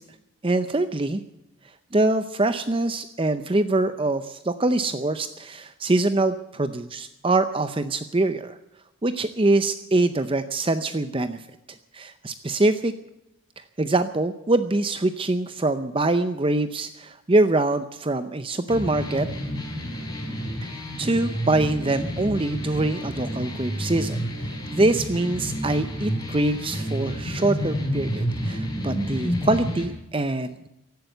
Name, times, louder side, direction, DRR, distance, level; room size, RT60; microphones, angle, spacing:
voice 1, 0.4-1.2 1.9-8.6 9.0-11.5 11.9-12.9 13.6-19.3 20.6-30.7, right 2 dB, 25° right, 11 dB, 0.6 m, -24 dB
sound 1, 18.7-29.8, equal, 20° left, 5.0 m, -30 dB
16.0 x 11.5 x 7.9 m, 0.92 s
head